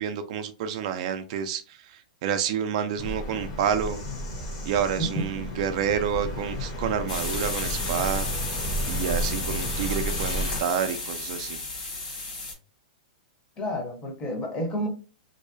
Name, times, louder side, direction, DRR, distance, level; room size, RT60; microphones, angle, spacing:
voice 1, 0.0-4.0 4.7-8.3 8.9-11.6, right 8 dB, 50° right, 0.3 m, -29 dB
Bird vocalization bird call bird song, 3.0-10.6, equal, 45° left, 1.0 m, -32 dB
voice 2, 5.0-5.5 13.6-14.9, equal, 20° left, 0.8 m, -30 dB
sound 1, 7.1-12.5, left 2 dB, 70° left, 1.2 m, -33 dB
2.6 x 2.0 x 2.6 m
hypercardioid pair, 145°, 5 cm